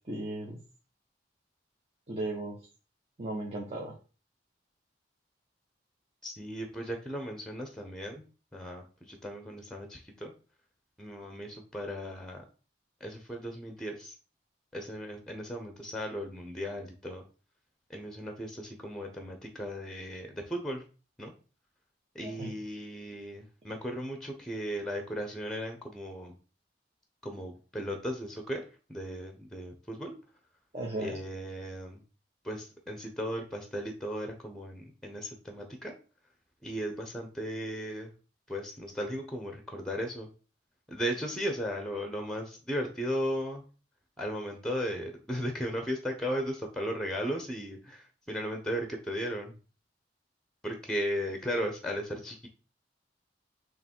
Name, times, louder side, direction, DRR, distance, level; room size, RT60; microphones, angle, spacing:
voice 1, 0.1-0.6 2.1-2.6 3.2-3.9 22.2-22.5 30.7-31.2, right 1 dB, 35° right, -2 dB, 1.2 m, -36 dB
voice 2, 6.2-8.2 8.5-10.3 11.0-12.4 13.0-14.2 14.7-17.2 17.9-20.8 21.2-21.3 22.1-26.3 27.2-28.6 28.9-30.2 31.0-32.0 32.4-35.9 36.6-38.1 38.5-40.3 40.9-43.6 44.2-49.5 50.6-52.5, equal, 5° left, 5 dB, 0.9 m, -36 dB
6.8 x 3.2 x 4.5 m, 0.36 s
head